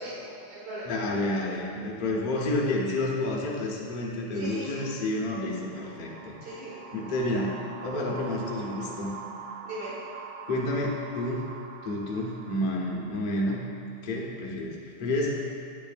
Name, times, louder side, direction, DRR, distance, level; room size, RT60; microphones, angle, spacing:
voice 1, 0.0-1.0 4.3-4.9 6.4-6.7 9.6-9.9, equal, 90° right, -8 dB, 2.7 m, -38 dB
voice 2, 0.9-6.4 6.9-9.1 10.5-11.5 11.8-13.6 14.0-15.4, left 1 dB, 60° left, -3 dB, 0.5 m, -30 dB
sound 1, 4.4-13.9, right 6 dB, 75° right, 1.0 m, -44 dB
7.7 x 7.3 x 2.5 m, 2.4 s
omnidirectional pair, 2.2 m